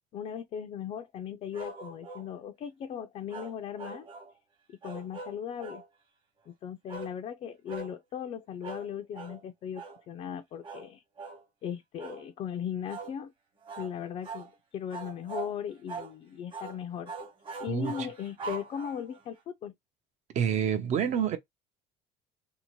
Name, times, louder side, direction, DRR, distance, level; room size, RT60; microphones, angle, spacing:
voice 1, 0.1-4.1 4.7-5.8 6.5-11.0 11.6-13.3 13.8-17.1 17.6-19.7, left 8 dB, 45° left, 0.4 m, -38 dB
sound 1, 1.5-2.3 3.3-4.3 4.8-5.9 6.9-7.2 7.7-7.9 8.6-8.9 9.1-9.4 9.7-10.0 10.6-10.9 11.2-11.4 12.0-12.2 12.9-13.1 13.7-13.9 14.2-14.5 14.9-15.5 15.9-16.1 16.5-16.8 17.1-19.2, right 4 dB, 35° right, 1.0 m, -41 dB
voice 2, 17.7-18.1 20.3-21.4, right 8 dB, 50° right, 0.6 m, -28 dB
2.8 x 2.0 x 2.8 m
cardioid pair, 115°, 15 cm